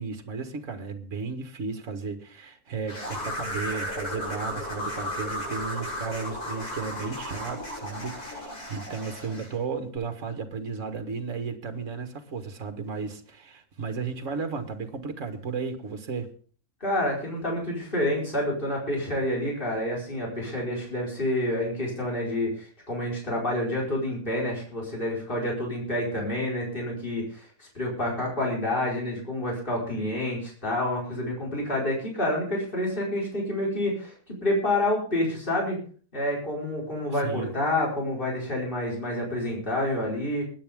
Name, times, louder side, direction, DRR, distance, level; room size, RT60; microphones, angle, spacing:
voice 1, 0.0-16.3 37.1-37.5, right 5 dB, 55° right, 7 dB, 1.9 m, -34 dB
sound 1, 2.9-9.5, left 1 dB, 80° left, 7.2 m, -34 dB
voice 2, 16.8-35.8 36.1-40.4, left 1 dB, 35° left, -3 dB, 5.0 m, -28 dB
21.5 x 10.0 x 3.6 m, 0.41 s
omnidirectional pair, 1.6 m